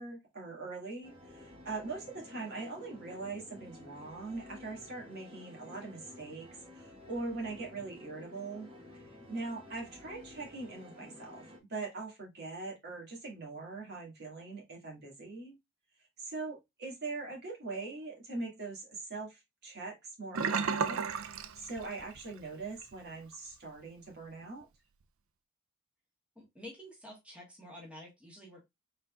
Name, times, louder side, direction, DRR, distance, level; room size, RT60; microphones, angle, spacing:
voice 1, 0.0-8.7 9.2-15.6 16.2-24.7, right 3 dB, 50° right, -1 dB, 1.9 m, -42 dB
sound 1, 1.0-11.6, left 1 dB, 25° right, 1.2 m, -52 dB
Sink (filling or washing), 20.3-22.3 22.6-22.9 23.3-23.4, right 6 dB, 75° right, 0.4 m, -33 dB
voice 2, 26.3-28.6, left 1 dB, 5° right, -2 dB, 1.4 m, -49 dB
4.3 x 4.0 x 2.3 m, 0.19 s
head